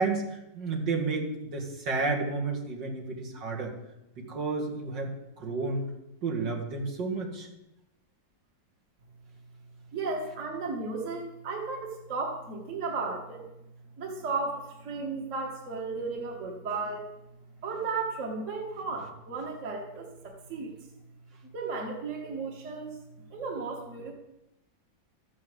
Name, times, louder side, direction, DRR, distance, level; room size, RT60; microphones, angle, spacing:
voice 1, 0.0-3.7 4.2-5.1 5.4-5.9 6.2-7.5, right 3 dB, 70° right, -1 dB, 2.9 m, -31 dB
voice 2, 9.9-13.4 14.0-17.1 17.6-20.7 21.5-23.0 23.3-24.1, right 4 dB, 40° right, 1 dB, 2.0 m, -34 dB
13.5 x 7.5 x 7.9 m, 0.92 s
omnidirectional pair, 2.0 m